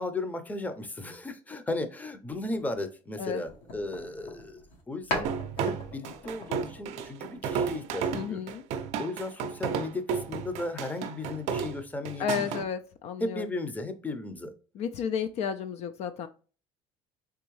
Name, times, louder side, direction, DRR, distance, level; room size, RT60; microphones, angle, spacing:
voice 1, 0.0-4.6 4.9-5.3 5.6-8.5 9.0-12.6 13.2-14.5, left 2 dB, 10° left, 0.6 m, -35 dB
sound 1, 3.5-4.8 5.1-7.7, left 1 dB, 75° left, 1.4 m, -39 dB
sound 2, 5.2-12.6, right 6 dB, 65° right, 0.5 m, -32 dB
voice 2, 8.1-8.6 12.2-13.5 14.7-16.3, left 7 dB, 55° left, 0.4 m, -32 dB
3.5 x 3.0 x 3.1 m
supercardioid pair, 100°, 13 cm